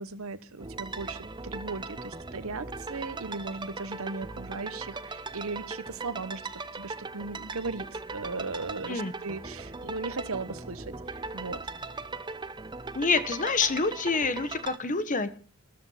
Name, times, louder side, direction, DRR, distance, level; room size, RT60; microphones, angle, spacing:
voice 1, 0.0-11.6, right 3 dB, 80° right, 14 dB, 1.1 m, -37 dB
sound 1, 0.6-14.8, right 3 dB, 20° right, 0.7 m, -39 dB
voice 2, 12.9-15.3, left 4 dB, 35° left, 12 dB, 1.2 m, -27 dB
13.5 x 13.0 x 5.6 m, 0.39 s
head